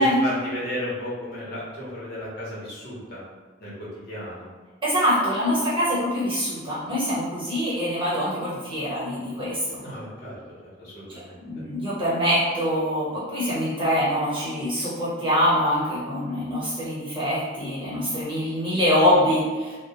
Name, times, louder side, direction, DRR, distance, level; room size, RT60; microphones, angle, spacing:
voice 1, 0.0-3.2 3.6-4.5 9.8-10.4 10.6-11.4, equal, 50° left, -8 dB, 0.8 m, -34 dB
voice 2, 4.8-9.8 11.1-19.7, equal, 25° right, -10 dB, 1.0 m, -24 dB
2.1 x 2.0 x 2.8 m, 1.4 s
head